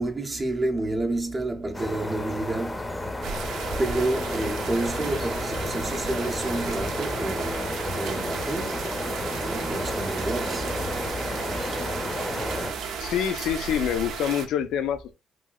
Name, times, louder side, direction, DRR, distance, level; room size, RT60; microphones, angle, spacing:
voice 1, 0.0-3.1 3.8-9.0 9.3-10.7, right 2 dB, 25° right, 0.5 m, -29 dB
sound 1, 1.7-12.7, left 1 dB, 20° left, 0.6 m, -32 dB
sound 2, 3.2-14.5, right 6 dB, 85° right, 0.5 m, -34 dB
voice 2, 13.0-15.1, left 9 dB, 85° left, 0.4 m, -26 dB
3.0 x 2.7 x 2.3 m
cardioid pair, 90°, 0 cm